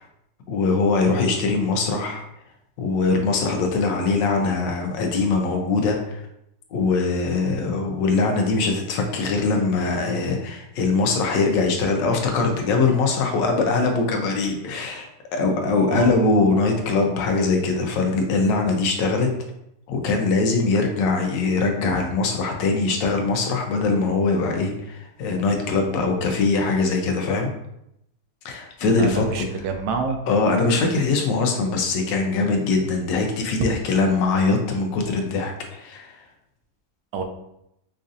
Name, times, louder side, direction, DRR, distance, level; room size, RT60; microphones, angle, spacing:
voice 1, 0.5-2.2 2.8-6.2 6.7-19.3 19.9-27.5 28.4-29.4 30.3-36.2, left 3 dB, 85° left, 3 dB, 1.3 m, -22 dB
voice 2, 28.8-30.2 37.1-37.2, right 5 dB, 85° right, 5 dB, 1.2 m, -27 dB
5.0 x 2.4 x 2.6 m, 0.80 s
omnidirectional pair, 1.9 m